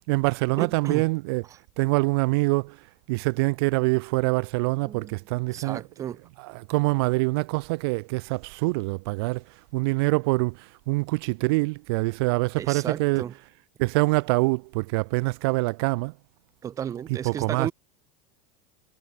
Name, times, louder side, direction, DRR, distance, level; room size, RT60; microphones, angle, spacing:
voice 1, 0.1-1.4 1.8-2.8 3.1-9.4 9.7-13.4 13.8-16.1 17.1-17.7, right 26 dB, 60° right, 1.6 m, -25 dB
voice 2, 0.6-1.1 4.8-5.2 5.5-6.2 12.6-13.3 16.6-17.7, right 9 dB, 20° right, 1.7 m, -33 dB
supercardioid pair, 160°, 15 cm